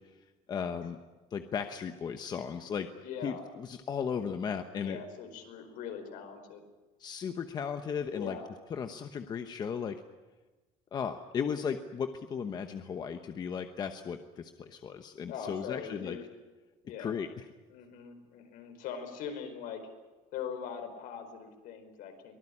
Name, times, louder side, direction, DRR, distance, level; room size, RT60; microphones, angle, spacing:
voice 1, 0.5-1.0 1.3-2.9 3.2-5.0 7.0-8.4 8.7-10.0 10.9-16.2 17.0-17.4, left 7 dB, 25° left, 7 dB, 1.0 m, -36 dB
voice 2, 3.0-3.4 4.8-6.6 8.1-8.5 15.3-16.2 16.8-17.2 17.7-19.8 20.3-22.3, left 7 dB, 65° left, 6 dB, 4.8 m, -41 dB
23.5 x 19.0 x 9.9 m, 1.2 s
cardioid pair, 180°, 15 cm